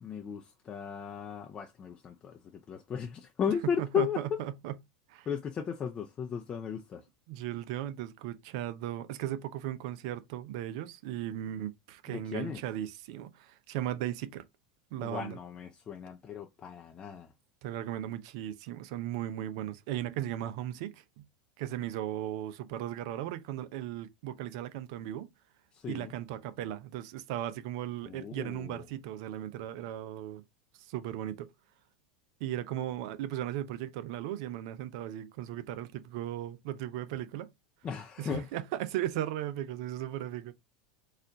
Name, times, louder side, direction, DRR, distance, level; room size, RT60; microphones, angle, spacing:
voice 1, 0.0-4.4 5.3-7.1 12.1-12.6 15.0-17.3 25.7-26.1 28.0-28.8 37.8-38.5, left 8 dB, 30° left, 0.5 m, -35 dB
voice 2, 3.8-4.7 5.1-5.3 7.3-14.4 14.9-15.4 17.6-21.2 21.6-25.3 25.9-30.4 30.8-31.5 32.4-37.5 38.2-40.5, right 12 dB, 65° right, 0.6 m, -37 dB
4.3 x 2.5 x 3.8 m
hypercardioid pair, 95°, 3 cm